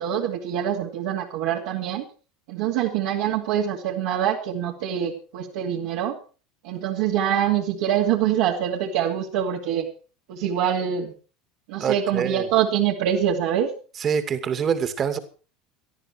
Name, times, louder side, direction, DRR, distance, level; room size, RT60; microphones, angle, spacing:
voice 1, 0.0-2.0 2.5-6.2 6.6-9.9 10.3-11.1 11.7-13.7, right 10 dB, 65° right, -3 dB, 2.5 m, -24 dB
voice 2, 11.8-12.5 14.0-15.2, right 7 dB, 35° right, 10 dB, 2.4 m, -25 dB
18.5 x 13.5 x 4.6 m, 0.37 s
hypercardioid pair, 80°, 0 cm